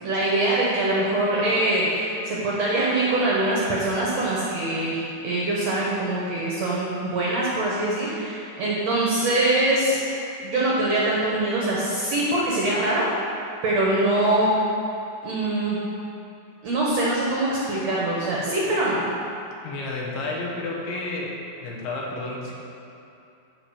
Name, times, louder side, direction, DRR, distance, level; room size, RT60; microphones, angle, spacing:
voice 1, 0.0-10.0 10.4-13.1 13.6-14.5 15.2-15.8 16.6-19.0, right 2 dB, 65° right, -6 dB, 1.7 m, -23 dB
voice 2, 19.6-21.3 21.6-22.5, left 2 dB, 85° left, -2 dB, 3.2 m, -31 dB
13.5 x 4.6 x 4.9 m, 2.8 s
omnidirectional pair, 4.4 m